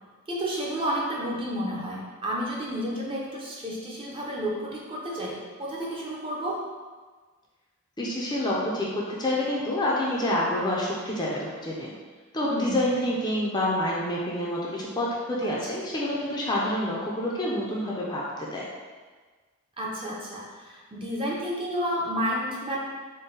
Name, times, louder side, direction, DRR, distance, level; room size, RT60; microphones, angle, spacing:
voice 1, 0.3-6.6 12.4-12.8 15.4-15.7 19.8-22.8, equal, 25° right, -4 dB, 0.6 m, -31 dB
voice 2, 8.0-11.9 12.3-18.6, left 1 dB, 20° left, -5 dB, 0.5 m, -28 dB
3.9 x 2.2 x 3.8 m, 1.4 s
head